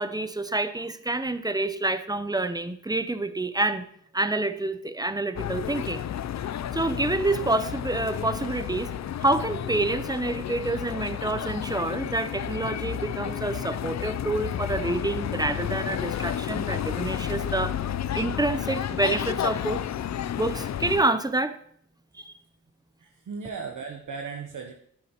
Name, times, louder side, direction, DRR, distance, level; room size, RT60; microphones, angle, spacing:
voice 1, 0.0-3.8 4.1-6.0 6.7-8.9 9.2-17.8 18.1-19.8 20.4-21.6 22.2-22.3, right 2 dB, 10° right, 11 dB, 0.6 m, -27 dB
sound 1, 5.4-21.0, left 10 dB, 55° left, 0.4 m, -31 dB
voice 2, 23.0-24.7, right 5 dB, 70° right, 3 dB, 0.8 m, -36 dB
9.9 x 9.5 x 2.9 m, 0.67 s
cardioid pair, 55°, 32 cm